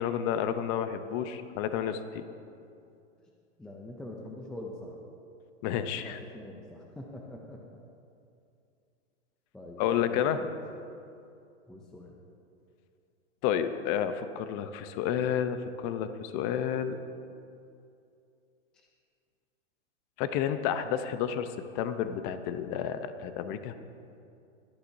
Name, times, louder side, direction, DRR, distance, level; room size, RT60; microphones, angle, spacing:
voice 1, 0.0-2.3 5.6-6.2 9.8-10.4 13.4-17.0 20.2-21.5 21.7-23.7, left 9 dB, 35° left, 10 dB, 0.7 m, -30 dB
voice 2, 3.6-4.9 5.8-7.6 9.5-10.5 11.7-12.2, left 1 dB, ahead, -1 dB, 0.3 m, -44 dB
23.0 x 10.0 x 2.7 m, 2.5 s
hypercardioid pair, 135°, 37 cm